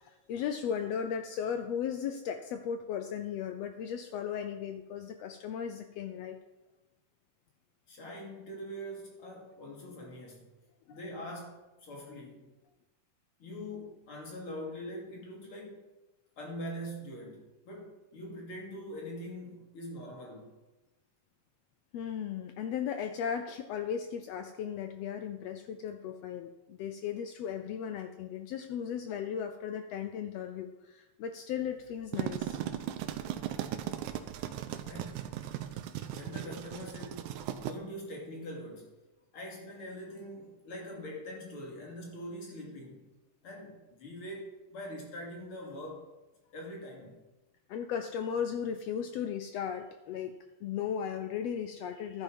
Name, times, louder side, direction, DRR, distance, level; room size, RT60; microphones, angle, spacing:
voice 1, 0.0-6.4 10.9-11.0 21.9-32.6 47.7-52.2, left 8 dB, 80° left, 7 dB, 1.5 m, -36 dB
voice 2, 7.9-10.5 10.9-12.5 13.4-15.9 16.4-20.6 34.9-35.2 36.1-37.3 37.6-38.9 39.3-43.1 43.4-46.1 46.5-47.2, equal, 45° left, -1 dB, 3.1 m, -43 dB
sound 1, 31.9-37.7, right 11 dB, 80° right, 2.1 m, -37 dB
11.5 x 9.1 x 5.2 m, 1.0 s
omnidirectional pair, 3.6 m